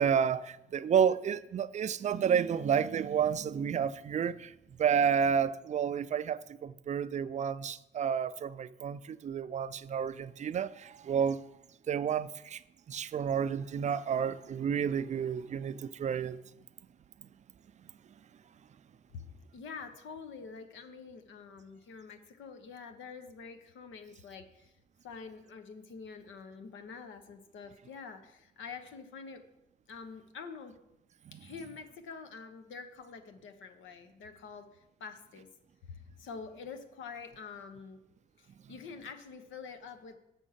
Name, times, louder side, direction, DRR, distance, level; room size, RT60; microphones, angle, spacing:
voice 1, 0.0-4.5 4.8-11.4 11.9-12.6 12.9-16.4, right 7 dB, 35° right, 0.4 m, -30 dB
voice 2, 19.5-24.7 25.0-29.4 29.9-30.8 31.3-35.5 35.9-38.0 38.4-40.2, left 5 dB, 75° left, 1.0 m, -46 dB
7.1 x 6.2 x 5.7 m
cardioid pair, 90°, 20 cm